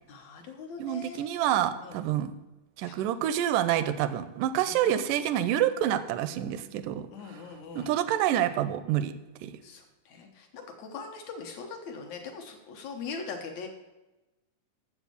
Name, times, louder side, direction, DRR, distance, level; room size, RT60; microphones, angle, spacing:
voice 1, 0.1-1.3 1.8-2.0 2.8-3.1 4.6-5.3 7.1-8.0 9.6-13.7, left 5 dB, 65° left, 2 dB, 1.9 m, -41 dB
voice 2, 0.8-2.3 2.8-7.1 7.8-9.2 9.4-9.5, right 11 dB, 80° right, 12 dB, 2.0 m, -27 dB
7.4 x 7.3 x 6.7 m, 1.1 s
omnidirectional pair, 4.2 m